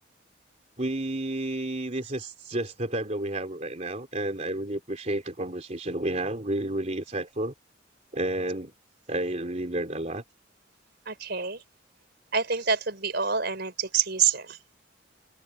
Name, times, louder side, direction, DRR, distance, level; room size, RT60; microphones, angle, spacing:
voice 1, 0.8-7.5 8.1-8.7 9.1-10.2, right 1 dB, 35° right, 3.3 m, -31 dB
voice 2, 11.1-11.6 12.3-14.6, right 6 dB, 55° right, 5.0 m, -27 dB
open air
head